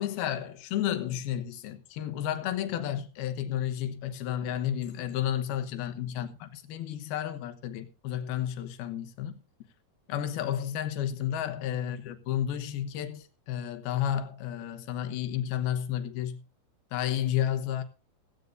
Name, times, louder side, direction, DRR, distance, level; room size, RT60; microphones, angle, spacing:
voice 1, 0.0-9.4 10.1-16.4 16.9-17.8, left 10 dB, 85° left, 3.1 m, -32 dB
16.0 x 15.5 x 2.6 m
omnidirectional pair, 4.3 m